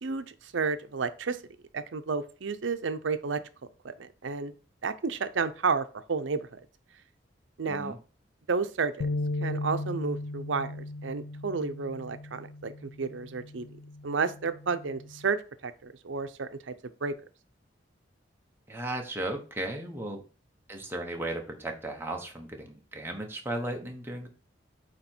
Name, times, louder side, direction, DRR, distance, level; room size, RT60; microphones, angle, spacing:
voice 1, 0.0-1.4 1.7-3.4 3.8-4.5 4.8-6.6 7.6-7.9 8.5-9.1 9.4-13.7 14.0-15.4 15.6-16.7 17.0-17.1, right 5 dB, 85° right, 11 dB, 0.6 m, -31 dB
sound 1, 9.0-15.2, left 2 dB, 65° left, 0.4 m, -37 dB
voice 2, 18.7-20.2 20.7-24.3, right 1 dB, 10° right, 2 dB, 1.0 m, -35 dB
8.3 x 3.1 x 4.4 m, 0.37 s
head